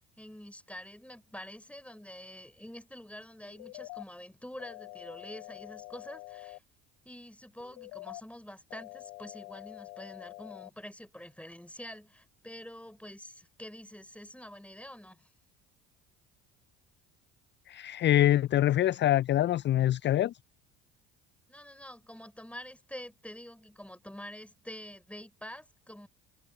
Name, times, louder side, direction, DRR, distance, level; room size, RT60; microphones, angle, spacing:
voice 1, 0.2-6.6 7.1-15.3 21.5-26.1, left 1 dB, 5° left, 5.4 m, -47 dB
sound 1, 3.4-4.0 4.6-6.6 7.6-8.2 8.7-10.7, left 28 dB, 70° left, 3.3 m, -46 dB
voice 2, 17.7-20.3, left 13 dB, 30° left, 0.4 m, -25 dB
hypercardioid pair, 60°, 39 cm